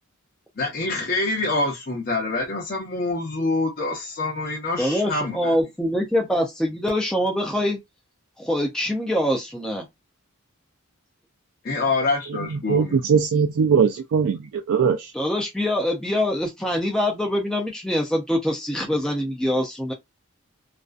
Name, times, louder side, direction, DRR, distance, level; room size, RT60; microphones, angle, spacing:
voice 1, 0.6-5.5 11.6-13.2, left 3 dB, 45° left, 0.7 m, -26 dB
voice 2, 4.8-7.8 8.4-9.9 15.1-19.9, left 1 dB, 5° left, 0.4 m, -24 dB
voice 3, 12.5-15.1, right 6 dB, 75° right, 0.3 m, -21 dB
2.5 x 2.2 x 2.3 m
head